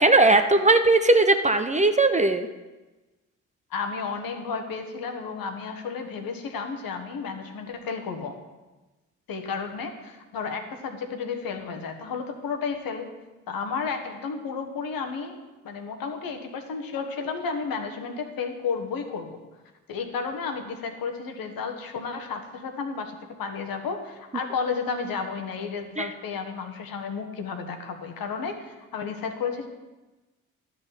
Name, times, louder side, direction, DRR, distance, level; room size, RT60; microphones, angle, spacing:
voice 1, 0.0-2.5 26.0-26.1, right 2 dB, 20° right, 8 dB, 0.7 m, -19 dB
voice 2, 3.7-8.4 9.3-13.1 13.5-19.4 19.9-29.7, left 5 dB, 60° left, 5 dB, 1.3 m, -32 dB
11.5 x 5.8 x 5.7 m, 1.1 s
hypercardioid pair, 45°, 39 cm